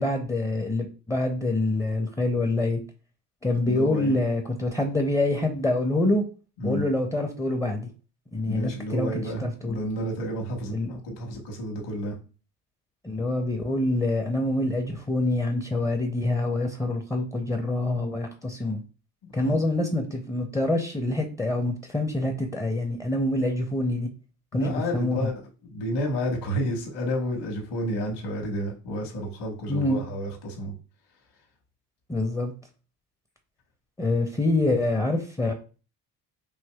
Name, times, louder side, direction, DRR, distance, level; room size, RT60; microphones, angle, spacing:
voice 1, 0.0-2.8 3.4-6.2 6.6-7.9 8.3-9.1 9.4-9.8 10.7-10.9 13.0-18.8 19.3-24.1 24.5-25.3 29.7-30.0 32.1-32.5 34.0-35.5, left 2 dB, 5° left, 5 dB, 0.5 m, -26 dB
voice 2, 3.6-4.2 6.6-6.9 8.5-12.2 19.2-19.6 24.5-25.3 25.6-30.7, equal, 55° left, 0 dB, 1.3 m, -31 dB
4.6 x 2.9 x 2.2 m, 0.36 s
hypercardioid pair, 50°, 48 cm